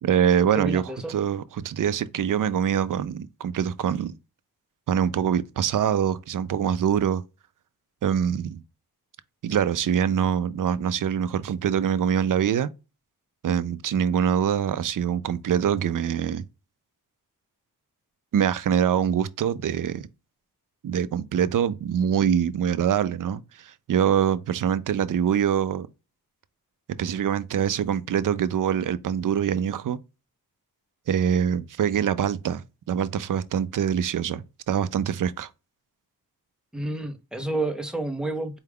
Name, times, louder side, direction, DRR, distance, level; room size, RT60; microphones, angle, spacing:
voice 1, 0.0-0.8 1.1-4.2 4.9-7.2 8.0-8.6 9.4-12.7 13.4-16.4 18.3-20.0 20.8-25.9 27.0-30.0 31.1-35.5, right 8 dB, 60° right, 0.4 m, -24 dB
voice 2, 0.5-1.1 36.7-38.6, right 2 dB, ahead, 0.6 m, -30 dB
4.6 x 2.2 x 3.4 m
wide cardioid pair, 130°, 38 cm